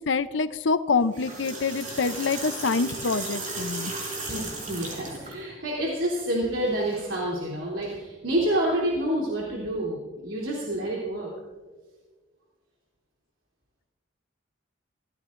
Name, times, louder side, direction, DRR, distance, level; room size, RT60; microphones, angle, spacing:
voice 1, 0.0-3.9, left 4 dB, 70° left, 13 dB, 0.6 m, -26 dB
sound 1, 1.0-5.3, right 2 dB, 40° right, 5.1 m, -35 dB
voice 2, 4.3-11.3, right 1 dB, 80° right, -4 dB, 3.1 m, -28 dB
27.0 x 15.5 x 2.5 m, 1.4 s
head